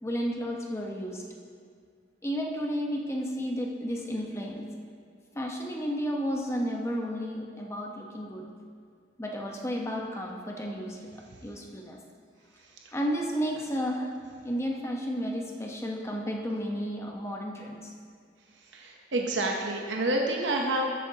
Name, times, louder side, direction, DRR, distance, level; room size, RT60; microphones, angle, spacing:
voice 1, 0.0-1.2 2.2-4.6 5.3-8.4 9.2-12.0 12.9-14.1 14.4-17.9, equal, 15° left, 0 dB, 0.9 m, -32 dB
voice 2, 12.6-12.9 18.5-20.9, right 1 dB, 75° right, 0 dB, 0.8 m, -29 dB
13.0 x 8.5 x 2.8 m, 2.1 s
head